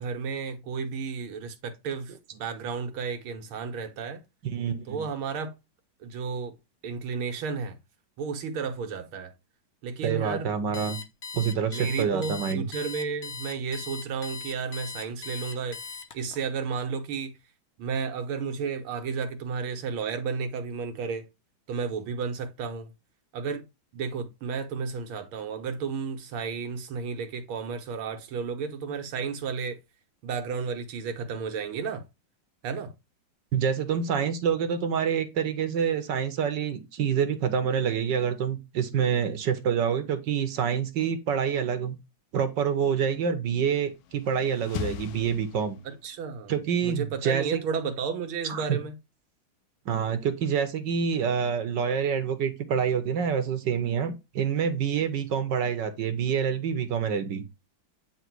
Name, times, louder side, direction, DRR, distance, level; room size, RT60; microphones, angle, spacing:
voice 1, 0.0-4.2 4.9-5.5 6.0-6.5 6.8-7.8 8.2-9.3 9.8-10.5 11.7-15.8 16.1-17.4 17.8-21.2 21.7-22.9 23.3-23.6 23.9-29.8 30.2-32.0 32.6-32.9 45.8-46.5 46.8-49.0, right 5 dB, 85° right, 2.0 m, -32 dB
voice 2, 4.4-5.1 10.0-11.0 11.3-12.6 33.5-42.0 42.3-45.8 46.5-47.6 48.4-48.8 49.9-57.4, right 7 dB, 65° right, 1.5 m, -27 dB
Alarm, 10.7-16.4, left 5 dB, 55° left, 0.7 m, -39 dB
sound 1, 43.8-46.2, left 10 dB, 90° left, 1.5 m, -39 dB
9.1 x 3.2 x 4.6 m
omnidirectional pair, 2.2 m